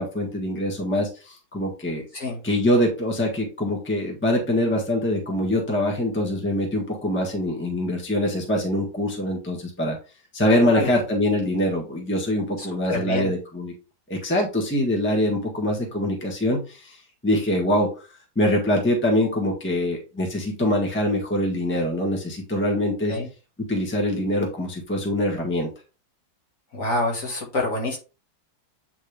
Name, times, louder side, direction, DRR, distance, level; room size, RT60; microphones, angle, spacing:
voice 1, 0.0-2.0 2.4-10.0 10.3-13.7 14.1-17.0 17.2-17.9 18.3-23.1 23.6-25.7, left 1 dB, 5° left, 0 dB, 1.3 m, -24 dB
voice 2, 10.5-11.0 12.6-13.3 23.1-23.3 26.7-28.0, left 2 dB, 50° left, -1 dB, 2.4 m, -27 dB
8.8 x 3.5 x 3.4 m, 0.32 s
omnidirectional pair, 1.9 m